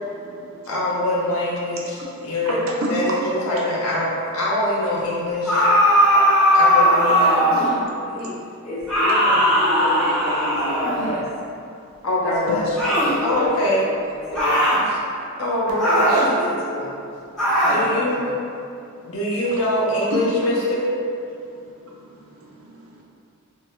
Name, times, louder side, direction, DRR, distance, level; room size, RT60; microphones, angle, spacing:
voice 1, 0.0-1.2 1.5-4.5 5.1-7.0 7.5-8.6 10.5-10.8 11.6-12.1 12.5-12.6 14.2-15.4 17.0-18.2 18.6-19.6 20.1-20.5 21.3-23.0, right 1 dB, 65° right, -3 dB, 0.5 m, -35 dB
voice 2, 0.7-1.8 2.2-2.6 2.9-3.0 3.4-5.6 6.5-7.5 12.0-12.7 13.2-13.8 15.4-16.3 17.6-18.2 19.0-20.9, left 1 dB, 70° left, -6 dB, 0.6 m, -23 dB
sound 1, 5.5-7.8 8.9-11.1 12.8-13.2 14.3-14.8 15.8-16.3 17.4-17.8, equal, 5° left, 0.5 m, -18 dB
voice 3, 7.2-7.7 8.1-8.3 8.6-11.3 12.2-12.6 12.9-13.9 14.3-14.6 14.8-15.0 15.8-17.0 17.6-18.3, left 1 dB, 30° left, -10 dB, 0.8 m, -31 dB
2.5 x 2.1 x 2.9 m, 2.5 s
head